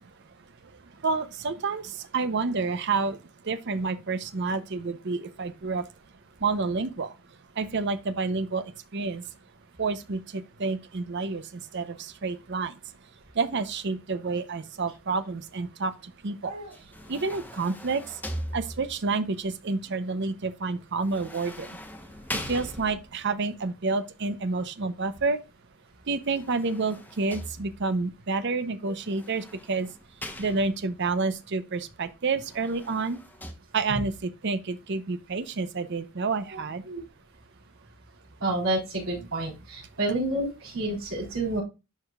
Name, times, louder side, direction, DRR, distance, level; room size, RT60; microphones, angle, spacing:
voice 1, 1.0-3.2 3.5-5.8 6.4-7.1 7.6-8.6 8.9-9.2 9.8-12.7 13.4-15.9 16.2-16.5 17.1-18.0 18.5-21.7 22.5-25.4 26.1-29.9 30.4-33.2 33.7-36.8, right 4 dB, 55° right, 0.6 m, -29 dB
sound 1, 16.7-19.1 21.0-23.3 26.1-28.0 29.0-31.0 32.3-33.5, left 1 dB, 10° left, 0.9 m, -40 dB
voice 2, 38.4-41.6, right 2 dB, 70° right, 3.9 m, -29 dB
11.0 x 4.9 x 2.3 m
head